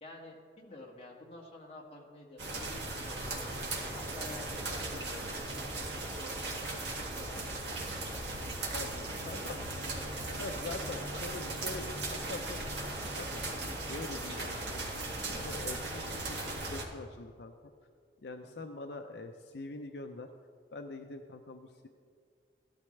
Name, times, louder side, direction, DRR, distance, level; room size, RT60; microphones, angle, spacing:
voice 1, 0.0-3.6 3.9-6.9 7.2-7.5 7.8-8.7 9.3-10.4 10.8-11.3 18.4-18.6, left 2 dB, 35° left, -2 dB, 1.7 m, -51 dB
sound 1, 2.4-16.8, right 2 dB, 75° right, 1.8 m, -38 dB
voice 2, 8.7-9.8 10.4-17.5 18.2-20.3 20.7-21.9, left 2 dB, 70° left, 5 dB, 0.6 m, -44 dB
15.5 x 11.5 x 3.2 m, 2.2 s
head